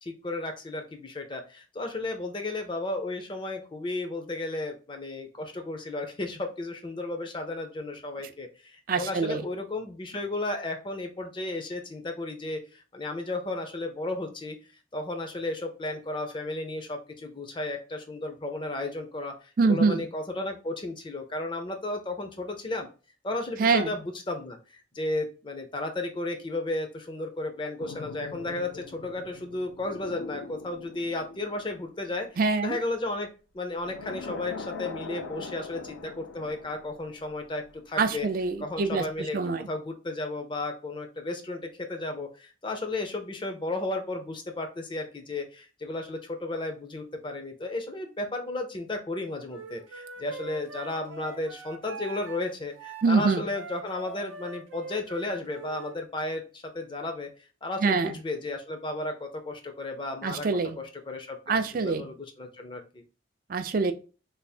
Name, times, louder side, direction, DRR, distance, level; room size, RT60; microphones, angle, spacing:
voice 1, 0.0-14.6 14.9-22.9 23.2-33.3 33.5-38.3 38.6-39.4 39.7-57.3 57.6-60.5 60.8-63.0, left 2 dB, 25° left, 4 dB, 0.5 m, -34 dB
voice 2, 8.9-9.4 19.6-20.0 23.6-23.9 32.4-32.8 38.0-39.0 39.3-39.7 53.0-53.5 57.8-58.1 60.2-60.8 61.5-62.1 63.5-63.9, right 4 dB, 45° right, 9 dB, 0.4 m, -25 dB
sound 1, 27.8-32.9 33.8-37.7 38.0-38.2, left 4 dB, 80° left, 0.4 m, -42 dB
Wind instrument woodwind instrument, 49.5-56.0, right 3 dB, 85° right, 0.6 m, -43 dB
3.4 x 2.0 x 4.2 m, 0.35 s
head